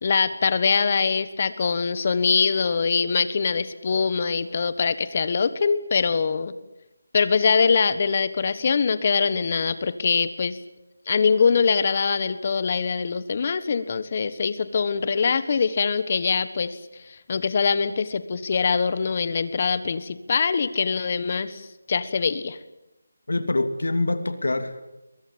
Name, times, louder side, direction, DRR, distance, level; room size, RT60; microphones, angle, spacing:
voice 1, 0.0-6.5 7.1-10.6 11.1-16.8 17.1-22.6, left 5 dB, 35° left, 14 dB, 1.4 m, -23 dB
voice 2, 23.3-24.8, left 2 dB, 85° left, 10 dB, 2.8 m, -25 dB
22.5 x 21.0 x 8.8 m, 0.96 s
figure-of-eight pair, 175°, 0 cm